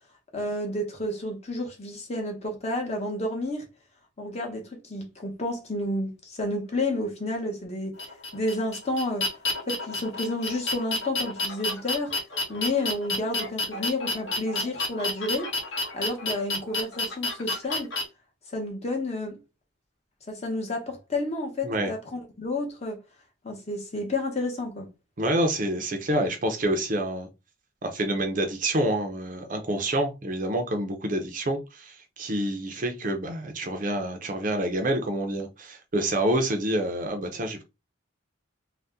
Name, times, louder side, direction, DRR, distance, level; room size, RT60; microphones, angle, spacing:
voice 1, 0.3-3.7 4.2-8.0 8.3-9.3 9.7-12.1 12.5-15.5 15.9-17.9 18.5-19.4 20.3-23.0 23.4-24.9, left 1 dB, 30° left, 0.8 m, -30 dB
sound 1, 8.0-18.0, left 2 dB, 65° left, 1.0 m, -30 dB
voice 2, 25.2-27.3 27.8-37.6, right 1 dB, 40° right, 0.5 m, -27 dB
2.7 x 2.1 x 3.4 m
head